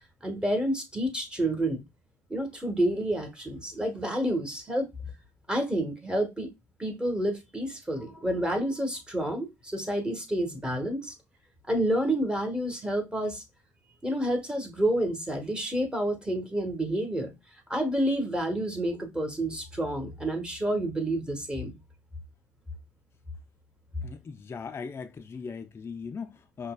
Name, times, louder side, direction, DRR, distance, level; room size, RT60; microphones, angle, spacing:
voice 1, 0.2-1.8 2.3-4.9 5.5-6.5 6.8-11.1 11.7-13.4 14.0-17.3 17.7-21.8, right 1 dB, 10° right, 1.2 m, -29 dB
voice 2, 24.0-26.7, left 5 dB, 30° left, 0.5 m, -39 dB
5.3 x 2.2 x 2.3 m
hypercardioid pair, 60°, 8 cm